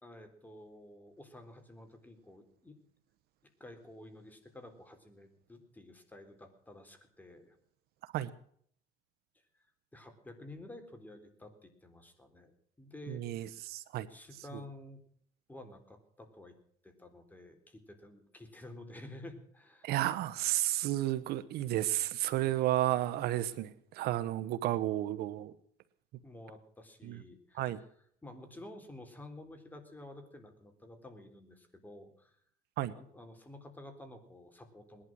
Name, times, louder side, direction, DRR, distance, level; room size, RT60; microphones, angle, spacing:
voice 1, 0.0-2.8 3.6-7.6 9.9-13.6 14.1-15.0 15.5-16.6 16.8-19.9 22.5-22.6 26.2-27.8 28.2-32.3 32.9-35.0, left 1 dB, 10° left, 6 dB, 3.7 m, -51 dB
voice 2, 13.1-14.1 19.8-25.5 27.0-27.2 27.5-27.8 32.8-32.9, right 14 dB, 65° right, 15 dB, 1.1 m, -32 dB
20.0 x 11.5 x 6.2 m, 0.63 s
cardioid pair, 110°, 17 cm